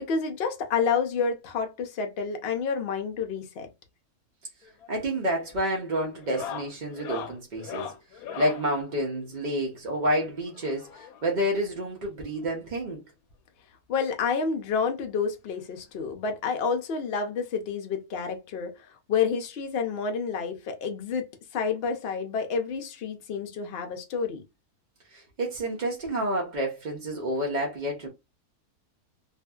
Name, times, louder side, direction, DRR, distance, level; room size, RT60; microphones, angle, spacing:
voice 1, 0.0-3.7 13.9-18.7 19.1-21.3 21.5-24.4, left 5 dB, 60° left, 0.7 m, -29 dB
sound 1, 4.6-5.0 5.2-5.6 6.1-8.7 10.0-11.4 12.4-12.5 12.7-12.9 13.3-13.4 14.7-14.8 16.1-16.2, left 8 dB, 75° left, 1.0 m, -40 dB
voice 2, 4.9-7.9 8.4-13.0 25.1-28.1, equal, 65° right, 0.4 m, -29 dB
2.6 x 2.4 x 2.2 m
omnidirectional pair, 1.6 m